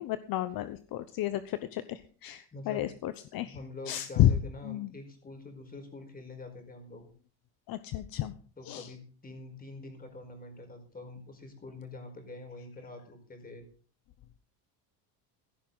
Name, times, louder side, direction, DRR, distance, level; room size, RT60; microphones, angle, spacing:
voice 1, 0.0-3.6 3.9-4.3 4.6-4.9 7.7-8.3 8.6-8.9, left 13 dB, 55° left, 13 dB, 0.9 m, -31 dB
voice 2, 2.5-2.9 3.4-7.0 8.6-13.6, left 2 dB, 20° left, 6 dB, 4.7 m, -45 dB
15.5 x 12.5 x 4.0 m, 0.40 s
cardioid pair, 115°, 42 cm